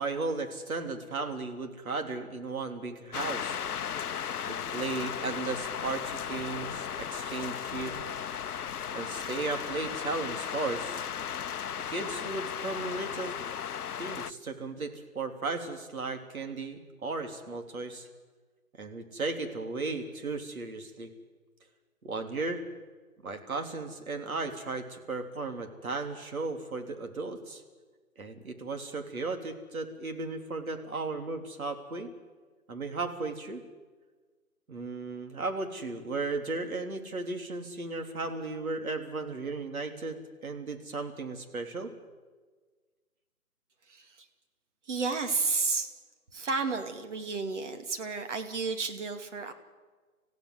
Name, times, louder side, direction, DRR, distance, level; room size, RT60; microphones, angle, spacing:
voice 1, 0.0-3.6 4.4-7.9 8.9-11.0 11.9-13.4 14.0-18.1 18.8-21.1 22.0-22.6 23.2-27.6 28.2-32.1 32.7-33.6 34.7-41.9, right 3 dB, 70° right, 5 dB, 3.7 m, -35 dB
sound 1, 3.1-14.3, left 8 dB, 85° left, 0.7 m, -36 dB
voice 2, 44.9-45.9 46.3-49.5, right 4 dB, 50° right, 6 dB, 2.5 m, -31 dB
27.5 x 15.5 x 7.9 m, 1.4 s
hypercardioid pair, 155°, 44 cm